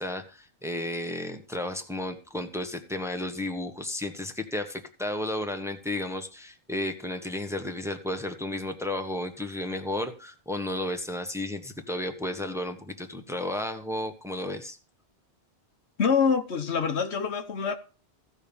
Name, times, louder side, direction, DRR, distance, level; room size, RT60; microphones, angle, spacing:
voice 1, 0.0-14.8, left 1 dB, 5° right, 1.2 m, -33 dB
voice 2, 16.0-17.8, left 6 dB, 75° left, 1.4 m, -25 dB
15.5 x 5.3 x 7.1 m
omnidirectional pair, 1.1 m